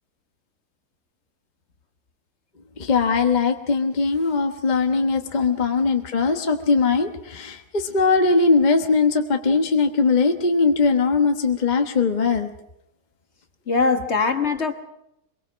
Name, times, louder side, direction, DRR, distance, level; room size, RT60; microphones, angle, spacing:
voice 1, 2.8-12.5, left 4 dB, 30° left, 5 dB, 1.3 m, -20 dB
voice 2, 13.7-14.7, left 4 dB, 45° left, 7 dB, 1.6 m, -22 dB
23.0 x 22.5 x 6.3 m, 0.80 s
omnidirectional pair, 1.6 m